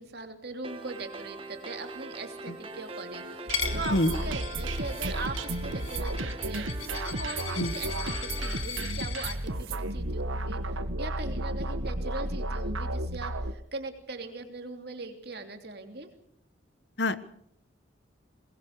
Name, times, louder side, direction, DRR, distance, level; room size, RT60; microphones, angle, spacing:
voice 1, 0.0-16.1, right 2 dB, 55° right, 6 dB, 3.0 m, -40 dB
sound 1, 0.6-8.6, right 2 dB, 25° right, 2.1 m, -42 dB
Coin (dropping), 3.5-9.4, left 8 dB, 90° left, 2.5 m, -38 dB
sound 2, 3.5-13.5, right 2 dB, 80° right, 1.6 m, -33 dB
voice 2, 3.9-4.1 7.6-7.7 17.0-17.2, left 1 dB, 60° left, 13 dB, 1.2 m, -24 dB
22.5 x 20.5 x 6.6 m, 0.68 s
head